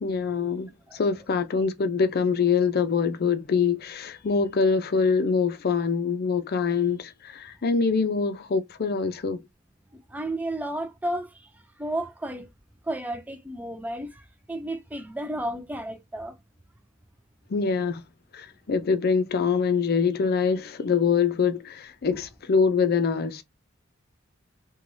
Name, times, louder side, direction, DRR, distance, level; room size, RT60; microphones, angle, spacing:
voice 1, 0.0-9.4 17.5-18.0 18.3-23.4, left 5 dB, 50° left, 0.5 m, -24 dB
voice 2, 9.9-11.5 11.8-12.5 12.8-16.4, right 1 dB, 10° right, 0.4 m, -32 dB
3.2 x 2.2 x 2.6 m
head